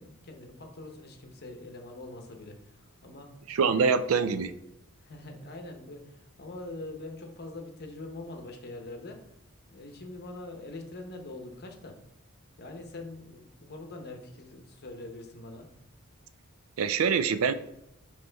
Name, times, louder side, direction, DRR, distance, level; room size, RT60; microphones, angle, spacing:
voice 1, 0.0-3.3 3.7-3.8 5.0-9.2 9.7-12.0 12.6-15.7, left 2 dB, 50° left, 4 dB, 0.9 m, -43 dB
voice 2, 3.5-4.6 16.8-17.5, right 5 dB, 70° right, 12 dB, 0.4 m, -25 dB
9.4 x 3.2 x 3.4 m, 0.85 s
head